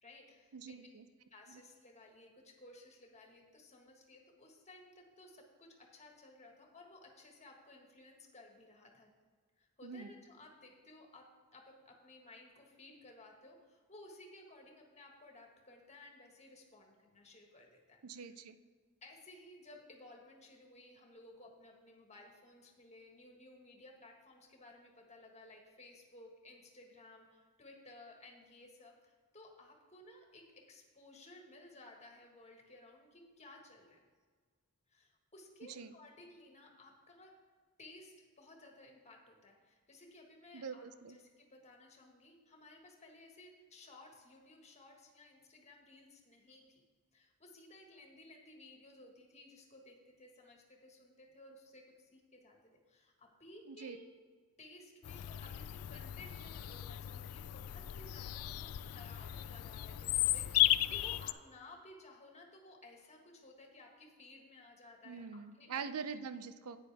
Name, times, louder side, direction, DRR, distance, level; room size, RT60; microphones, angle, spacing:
voice 1, 0.0-0.8 1.3-9.1 9.6-11.3 11.5-18.3 19.0-34.0 34.9-37.3 37.8-46.8 47.1-52.6 52.9-54.1 54.6-65.9, left 2 dB, 30° left, 2 dB, 1.6 m, -57 dB
voice 2, 0.5-1.1 1.5-1.6 9.8-10.1 18.0-18.6 35.7-35.9 40.5-41.2 53.7-54.0 65.0-66.8, right 6 dB, 75° right, 12 dB, 0.6 m, -44 dB
Bird vocalization bird call bird song, 55.0-61.3, left 14 dB, 70° left, 0.4 m, -35 dB
10.5 x 8.9 x 3.5 m, 1.5 s
head